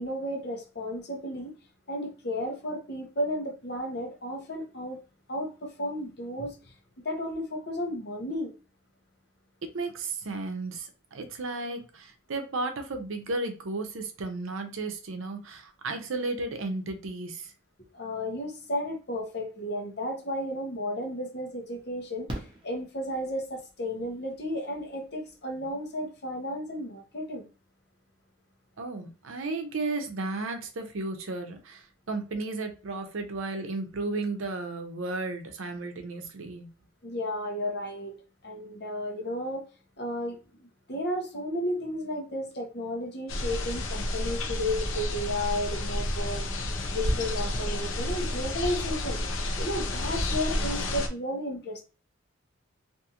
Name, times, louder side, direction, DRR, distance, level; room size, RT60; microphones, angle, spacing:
voice 1, 0.0-1.5 1.9-5.0 5.3-6.6 7.0-8.5 17.9-27.5 37.0-38.1 38.4-39.6 40.0-49.2 49.6-51.8, left 1 dB, 50° left, 0.8 m, -33 dB
voice 2, 9.7-17.5 28.8-36.7, right 3 dB, 80° right, 0.6 m, -34 dB
Fireworks, 22.3-23.6 25.4-25.5 25.7-25.8, right 1 dB, 25° right, 0.7 m, -40 dB
sound 1, 43.3-51.1, left 1 dB, 80° left, 0.6 m, -30 dB
2.6 x 2.4 x 2.8 m
head